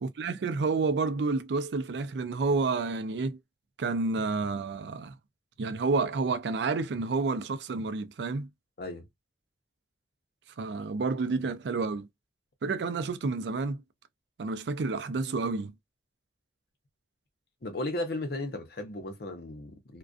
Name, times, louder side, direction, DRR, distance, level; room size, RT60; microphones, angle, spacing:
voice 1, 0.0-3.4 3.8-5.1 5.6-8.5 10.6-12.1 12.6-13.8 14.4-15.7, right 4 dB, 70° right, 0.4 m, -29 dB
voice 2, 17.6-20.0, left 1 dB, 60° left, 0.7 m, -35 dB
2.4 x 2.2 x 2.3 m
head